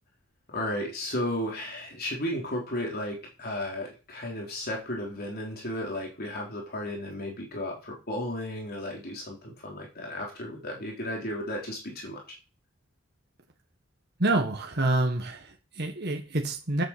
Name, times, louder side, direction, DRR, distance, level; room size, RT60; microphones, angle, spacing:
voice 1, 0.5-12.4, left 1 dB, 50° left, -1 dB, 4.0 m, -34 dB
voice 2, 14.2-16.8, right 2 dB, 50° right, 3 dB, 1.7 m, -27 dB
9.6 x 8.3 x 6.9 m, 0.34 s
head